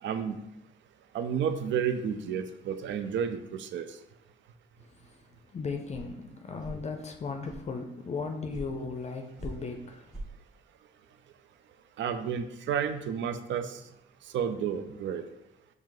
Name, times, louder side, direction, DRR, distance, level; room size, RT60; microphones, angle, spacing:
voice 1, 0.0-0.4 1.1-3.9 12.0-13.8 14.3-15.2, right 7 dB, 70° right, 0.4 m, -31 dB
voice 2, 4.8-5.2 5.5-10.1, left 4 dB, 35° left, 0.5 m, -37 dB
sound 1, 5.9-6.0 6.6-6.8 7.4-7.6 8.5-8.6 9.4-9.5 10.1-10.3, right 1 dB, 5° right, 1.3 m, -40 dB
5.5 x 2.0 x 4.7 m
cardioid pair, 90°, 20 cm